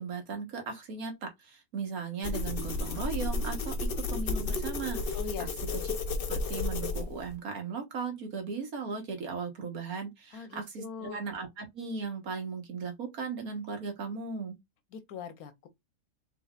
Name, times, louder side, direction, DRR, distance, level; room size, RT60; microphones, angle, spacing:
voice 1, 0.0-5.2 6.3-14.6, right 5 dB, 80° right, 1.7 m, -37 dB
sound 1, 2.2-7.4, left 3 dB, 50° left, 0.8 m, -32 dB
voice 2, 5.1-5.5 10.3-11.2 14.9-15.7, left 6 dB, 85° left, 1.3 m, -41 dB
4.2 x 3.6 x 2.4 m
omnidirectional pair, 1.5 m